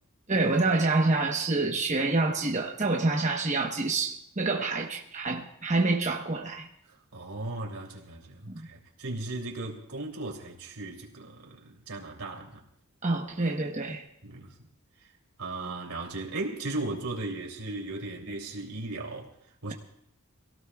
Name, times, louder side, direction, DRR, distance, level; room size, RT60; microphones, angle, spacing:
voice 1, 0.3-6.7 8.5-8.7 13.0-14.0, right 3 dB, 35° right, 1.1 m, -27 dB
voice 2, 7.1-12.6 14.2-14.5 15.4-19.3 19.6-19.7, right 2 dB, 85° right, 3.0 m, -36 dB
26.0 x 17.5 x 2.4 m
head